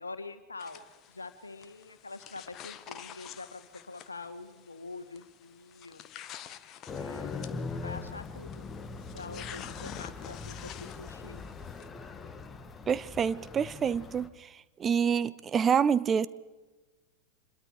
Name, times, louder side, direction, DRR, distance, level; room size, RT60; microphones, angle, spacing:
voice 1, 0.0-6.1 6.9-8.7 9.1-11.4, left 3 dB, 80° left, 1.7 m, -45 dB
sound 1, 0.6-11.9, left 10 dB, 35° left, 1.3 m, -48 dB
sound 2, 6.9-14.3, left 4 dB, 20° left, 1.5 m, -41 dB
voice 2, 12.9-14.5 14.8-16.3, right 7 dB, 25° right, 0.6 m, -27 dB
26.5 x 22.0 x 4.9 m
figure-of-eight pair, 90°, 0 cm